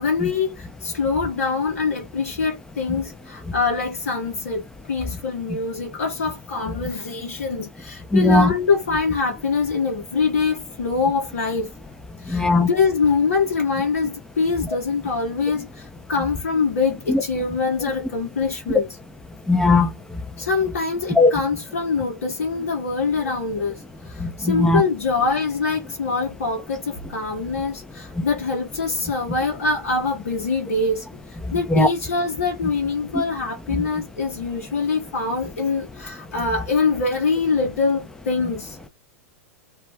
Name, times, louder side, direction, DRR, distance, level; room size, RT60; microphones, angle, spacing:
voice 1, 0.0-11.7 12.2-18.9 20.4-31.1 31.5-38.8, left 4 dB, 75° left, 0.8 m, -24 dB
voice 2, 8.1-8.5 12.3-12.7 17.1-17.2 19.5-19.9 21.2-21.3 24.2-24.8 31.7-31.9, left 2 dB, 5° left, 0.5 m, -17 dB
2.3 x 2.1 x 3.2 m
hypercardioid pair, 105°, 8 cm